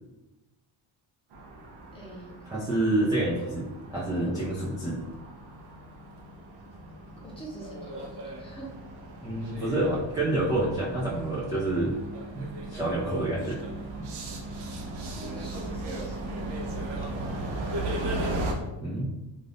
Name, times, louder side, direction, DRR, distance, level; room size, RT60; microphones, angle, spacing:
sound 1, 1.3-18.5, right 1 dB, 60° right, 0.6 m, -37 dB
voice 1, 1.9-2.3 4.1-4.4 7.2-8.7 15.2-16.9, right 2 dB, 10° left, -5 dB, 0.7 m, -43 dB
voice 2, 2.5-5.0 9.2-12.0 12.3-13.6 18.8-19.1, right 2 dB, 10° right, -8 dB, 0.4 m, -28 dB
2.6 x 2.4 x 3.3 m, 1.0 s
cardioid pair, 155°, 46 cm